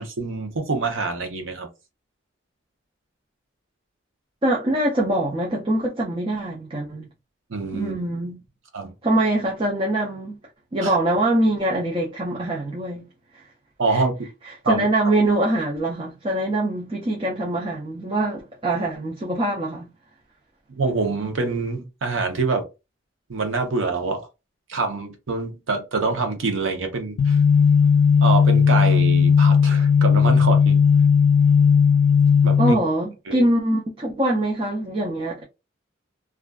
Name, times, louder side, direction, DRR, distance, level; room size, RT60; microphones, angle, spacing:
voice 1, 0.0-1.7 7.5-7.9 8.7-8.9 10.8-11.0 13.8-14.1 14.6-14.9 20.8-22.6 23.3-24.3 24.7-27.4 28.2-30.8 32.4-32.8 33.3-33.4, right 3 dB, 80° right, 0.7 m, -25 dB
voice 2, 4.4-7.1 7.7-8.4 9.0-10.4 10.7-13.1 13.9-14.0 14.4-19.9 32.6-35.4, right 1 dB, 25° right, 0.4 m, -23 dB
sound 1, 27.2-32.7, left 6 dB, 80° left, 0.3 m, -16 dB
2.4 x 2.4 x 2.2 m
head